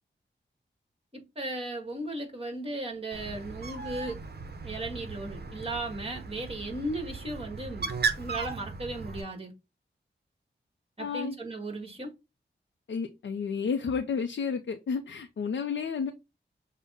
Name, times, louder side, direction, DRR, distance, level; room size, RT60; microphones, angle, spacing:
voice 1, 1.1-4.2 4.6-7.9 8.2-9.5 11.0-12.1, right 2 dB, 30° right, 1.6 m, -36 dB
Bird, 3.1-9.2, right 4 dB, 55° right, 0.8 m, -36 dB
voice 2, 11.0-11.4 12.9-16.1, left 6 dB, 85° left, 0.5 m, -31 dB
6.4 x 2.1 x 3.5 m
wide cardioid pair, 65°, 19 cm